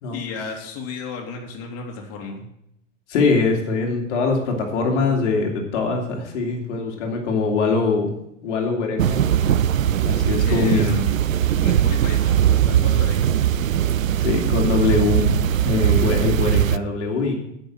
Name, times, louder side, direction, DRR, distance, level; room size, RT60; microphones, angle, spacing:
voice 1, 0.1-2.5 10.5-11.2 11.5-13.4, left 4 dB, 35° left, 1 dB, 2.7 m, -34 dB
voice 2, 3.1-8.1 8.4-9.5 10.0-10.9 14.2-15.3 15.6-17.4, left 4 dB, 60° left, 1 dB, 2.6 m, -22 dB
sound 1, 9.0-16.8, right 10 dB, 85° right, 0.5 m, -20 dB
9.9 x 6.2 x 7.6 m, 0.78 s
hypercardioid pair, 100°, 39 cm